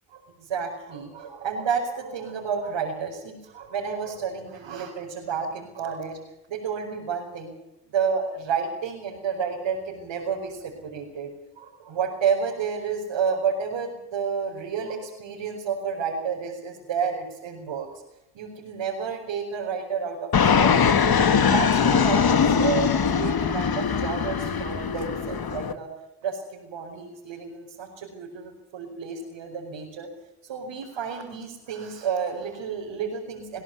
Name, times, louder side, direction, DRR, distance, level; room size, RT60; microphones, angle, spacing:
voice 1, 0.1-6.2 6.5-7.5 7.9-11.3 11.6-17.9 18.3-21.2 21.5-25.9 26.2-30.1 30.4-33.6, right 6 dB, 75° right, -3 dB, 5.2 m, -30 dB
Fixed-wing aircraft airplane, 20.3-25.7, left 6 dB, 50° left, 1.9 m, -21 dB
22.0 x 16.5 x 8.1 m, 0.88 s
supercardioid pair, 45°, 47 cm